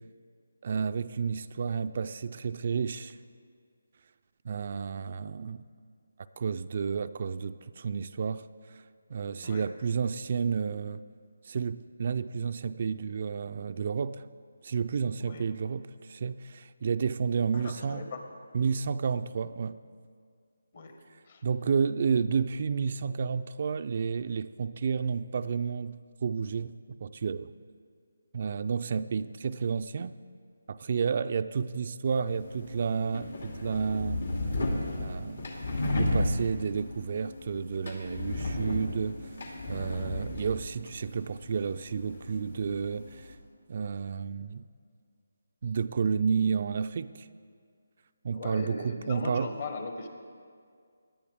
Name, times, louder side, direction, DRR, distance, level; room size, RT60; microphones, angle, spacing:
voice 1, 0.6-3.2 4.4-5.6 6.4-8.4 9.1-11.0 11.5-14.2 14.6-18.1 18.5-19.8 21.4-27.5 28.3-30.1 30.7-34.2 35.0-35.5 35.9-39.2 39.7-43.3 43.7-44.6 45.6-47.3 48.2-49.5, right 6 dB, 45° right, 0.3 m, -31 dB
voice 2, 17.5-18.2 20.7-20.9 21.3-21.4 40.0-40.3 48.3-50.1, left 3 dB, 50° left, 1.4 m, -39 dB
sound 1, 32.3-43.4, left 1 dB, 75° left, 2.4 m, -34 dB
17.5 x 11.0 x 3.5 m
figure-of-eight pair, 160°, 0 cm